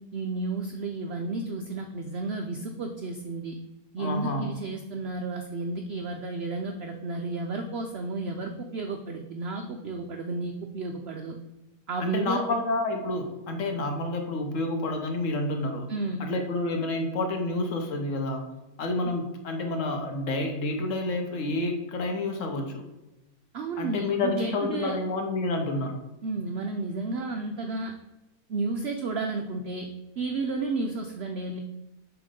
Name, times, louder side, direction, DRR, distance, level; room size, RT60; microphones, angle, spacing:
voice 1, 0.1-3.6 3.9-11.4 11.9-12.4 15.9-16.2 23.5-24.9 26.2-27.9 28.5-29.9 30.2-31.6, right 3 dB, 85° right, 5 dB, 0.5 m, -32 dB
voice 2, 4.0-4.5 12.0-15.9 16.2-18.4 18.8-22.8 23.8-26.0, left 2 dB, 60° left, 4 dB, 1.1 m, -29 dB
7.0 x 3.0 x 5.1 m, 0.99 s
omnidirectional pair, 1.7 m